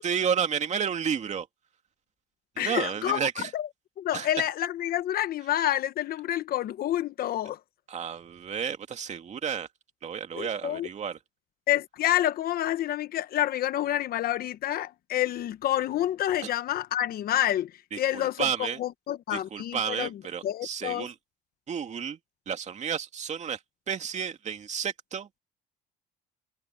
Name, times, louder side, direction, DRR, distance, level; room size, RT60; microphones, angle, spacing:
voice 1, 0.0-1.5 2.6-3.5 4.1-4.5 7.9-9.7 10.0-11.2 17.9-18.8 19.3-21.1 21.7-22.2 22.5-23.6 23.9-25.4, right 7 dB, 45° right, 2.4 m, -31 dB
voice 2, 2.6-3.2 3.5-3.7 4.0-7.6 10.3-10.9 11.7-17.7 18.0-20.1 20.4-21.1, left 12 dB, 65° left, 1.1 m, -28 dB
cardioid pair, 110°, 17 cm